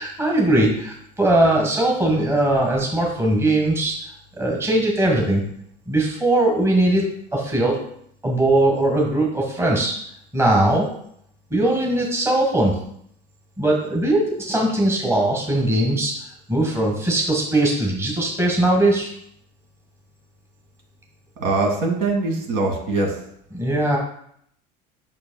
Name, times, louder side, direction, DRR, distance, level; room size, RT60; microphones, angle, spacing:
voice 1, 0.0-4.1 4.4-5.4 5.9-7.1 7.3-7.8 8.2-9.9 10.3-10.9 11.5-12.8 13.6-16.1 16.5-19.1 23.5-24.0, right 1 dB, 10° right, -2 dB, 1.6 m, -20 dB
voice 2, 21.4-23.1, right 3 dB, 65° right, 1 dB, 2.1 m, -22 dB
8.5 x 6.0 x 2.3 m, 0.70 s
cardioid pair, 130°, 20 cm